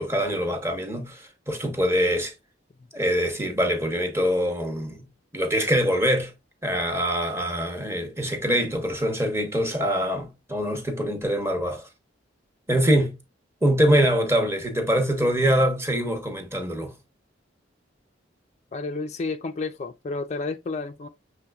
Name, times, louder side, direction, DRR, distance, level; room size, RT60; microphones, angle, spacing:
voice 1, 0.0-2.3 2.9-5.1 5.3-6.3 6.6-11.9 12.7-13.1 13.6-16.9, equal, 15° right, 0.9 m, -24 dB
voice 2, 18.7-21.1, left 3 dB, 35° left, 0.3 m, -31 dB
6.7 x 3.3 x 2.3 m
head